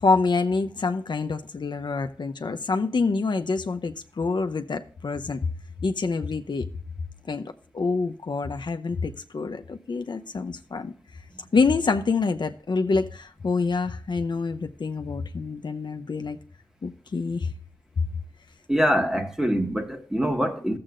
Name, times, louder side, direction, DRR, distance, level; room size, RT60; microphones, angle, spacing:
voice 1, 0.0-5.4 5.8-6.7 7.3-10.9 11.5-16.4 16.8-17.5, left 4 dB, 65° left, 0.7 m, -26 dB
voice 2, 18.7-20.8, equal, 5° right, 1.6 m, -24 dB
14.0 x 7.7 x 2.5 m
cardioid pair, 55°, 8 cm